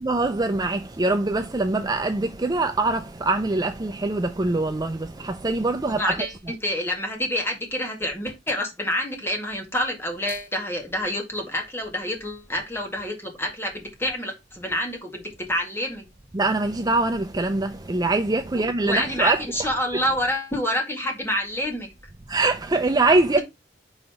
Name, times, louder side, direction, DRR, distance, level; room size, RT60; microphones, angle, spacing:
voice 1, 0.0-6.3 16.3-19.4 19.9-20.0 22.3-23.4, right 2 dB, 20° right, 0.5 m, -23 dB
voice 2, 5.9-6.3 6.6-16.1 18.5-21.9, left 1 dB, 15° left, 1.9 m, -28 dB
5.6 x 3.9 x 4.4 m
head